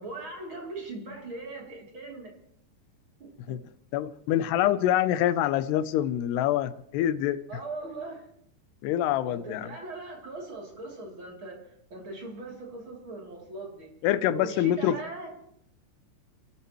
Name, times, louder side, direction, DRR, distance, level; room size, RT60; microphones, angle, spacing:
voice 1, 0.0-2.3 3.2-3.6 7.5-8.2 9.2-11.6 11.9-13.9 14.3-15.4, right 2 dB, 30° right, 3.3 m, -40 dB
voice 2, 3.9-7.4 8.8-9.7 14.0-15.0, left 12 dB, 80° left, 2.6 m, -25 dB
29.5 x 13.0 x 3.1 m
omnidirectional pair, 5.0 m